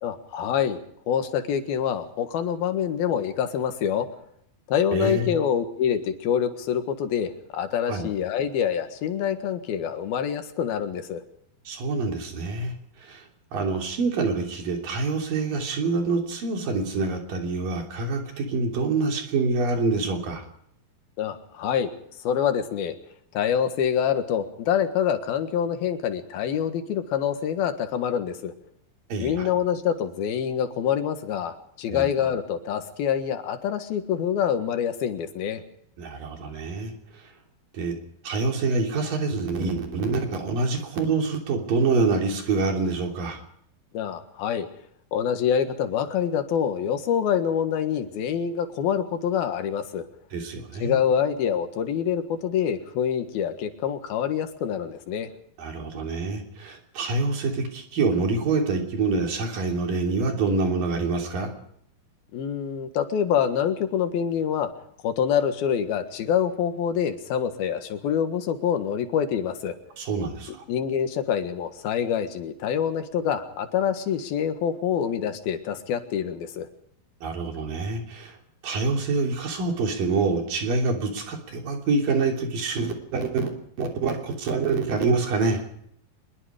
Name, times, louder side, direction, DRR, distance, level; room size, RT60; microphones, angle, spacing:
voice 1, 0.0-0.8 1.1-4.1 4.7-11.2 21.2-21.9 22.2-23.0 23.4-28.5 29.2-35.6 43.9-44.7 45.1-50.1 50.8-55.3 62.3-64.7 65.0-69.8 70.7-76.7, left 8 dB, 80° left, 8 dB, 3.5 m, -26 dB
voice 2, 4.9-5.3 7.9-8.1 11.7-13.2 13.5-20.4 29.1-29.5 31.9-32.1 36.0-36.9 37.7-38.0 38.2-43.4 50.3-51.0 55.6-61.5 70.0-70.6 77.2-78.4 78.6-83.5 83.8-85.6, right 3 dB, 65° right, 3 dB, 4.8 m, -26 dB
23.5 x 22.0 x 5.0 m, 0.70 s
omnidirectional pair, 4.2 m